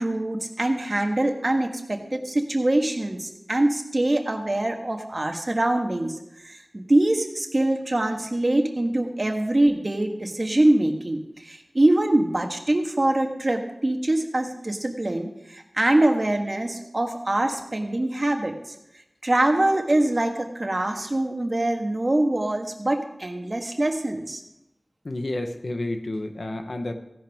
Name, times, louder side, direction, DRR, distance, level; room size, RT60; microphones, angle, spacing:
voice 1, 0.0-18.5 19.2-24.4, right 1 dB, 45° right, 4 dB, 1.5 m, -24 dB
voice 2, 25.0-26.9, left 1 dB, 75° left, 6 dB, 1.1 m, -30 dB
16.0 x 10.5 x 3.6 m, 0.88 s
wide cardioid pair, 60°, 0 cm